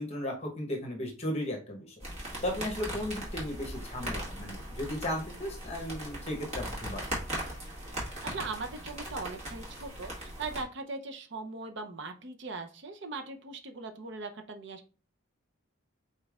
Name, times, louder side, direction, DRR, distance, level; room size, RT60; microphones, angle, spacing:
voice 1, 0.0-1.9 2.4-7.0, left 1 dB, 30° left, 1 dB, 0.9 m, -35 dB
sound 1, 2.0-10.6, right 1 dB, 30° right, 1.8 m, -39 dB
voice 2, 8.0-15.0, right 3 dB, 55° right, 6 dB, 0.6 m, -40 dB
5.2 x 4.0 x 2.4 m, 0.37 s
head